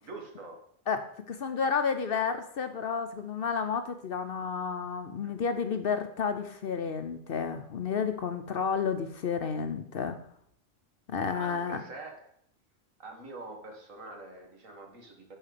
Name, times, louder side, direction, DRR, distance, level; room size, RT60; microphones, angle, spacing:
voice 1, 0.0-0.6 5.2-5.3 11.3-12.3 13.0-15.4, right 2 dB, 85° right, 2 dB, 2.0 m, -44 dB
voice 2, 0.9-10.2 11.1-11.8, left 6 dB, 55° left, 8 dB, 0.7 m, -31 dB
7.2 x 4.8 x 6.7 m, 0.67 s
omnidirectional pair, 1.3 m